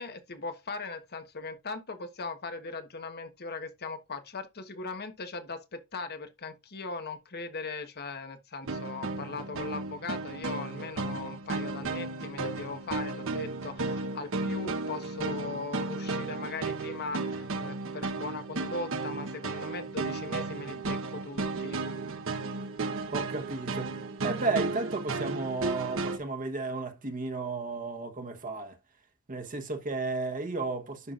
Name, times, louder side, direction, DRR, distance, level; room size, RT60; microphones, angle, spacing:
voice 1, 0.0-21.8, left 3 dB, 50° left, 1.2 m, -39 dB
sound 1, 8.6-26.2, right 3 dB, 65° right, 1.1 m, -34 dB
voice 2, 23.1-23.9 24.2-28.8 29.3-31.1, right 3 dB, 40° right, 1.2 m, -33 dB
11.0 x 5.8 x 2.5 m
head